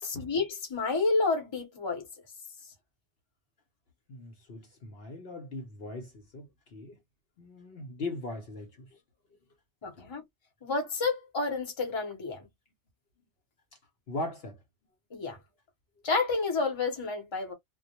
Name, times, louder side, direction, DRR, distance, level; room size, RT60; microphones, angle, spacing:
voice 1, 0.0-2.1 9.8-10.2 10.6-12.5 15.1-15.4 16.0-17.5, left 3 dB, 25° left, 0.7 m, -30 dB
voice 2, 4.1-7.0 7.4-9.0 10.0-10.1 14.1-14.6, left 2 dB, 60° left, 0.8 m, -40 dB
2.2 x 2.1 x 2.8 m
omnidirectional pair, 1.2 m